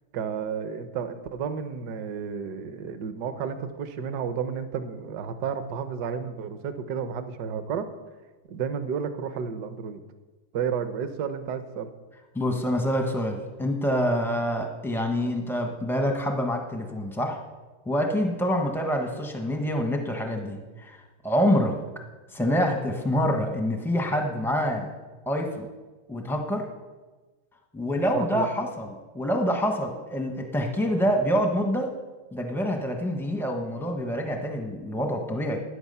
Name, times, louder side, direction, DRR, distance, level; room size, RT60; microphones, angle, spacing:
voice 1, 0.1-7.9 8.5-10.0 10.5-11.9 28.1-28.5, right 7 dB, 60° right, 10 dB, 1.3 m, -32 dB
voice 2, 12.3-17.4 17.9-21.0 21.2-21.8 22.3-24.9 25.3-25.7 26.1-26.7 27.7-31.9 32.3-35.6, equal, 5° left, 3 dB, 0.4 m, -26 dB
13.0 x 9.8 x 5.5 m, 1.3 s
omnidirectional pair, 2.3 m